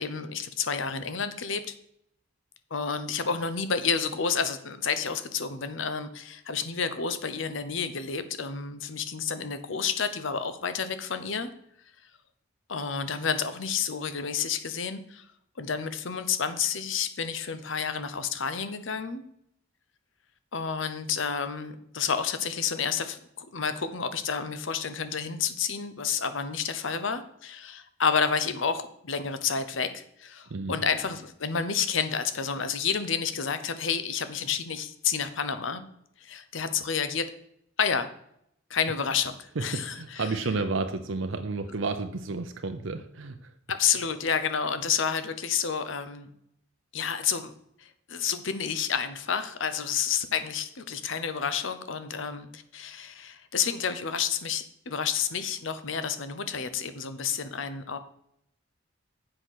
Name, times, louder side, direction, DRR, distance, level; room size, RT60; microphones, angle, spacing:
voice 1, 0.0-1.6 2.7-11.5 12.7-15.2 15.6-19.2 20.5-35.8 36.2-37.3 37.8-38.1 38.7-40.3 43.7-46.3 46.9-47.5 47.8-58.0, left 6 dB, 65° left, 11 dB, 0.8 m, -30 dB
voice 2, 39.6-43.5, right 3 dB, 70° right, 8 dB, 0.6 m, -31 dB
7.9 x 5.8 x 6.4 m, 0.73 s
head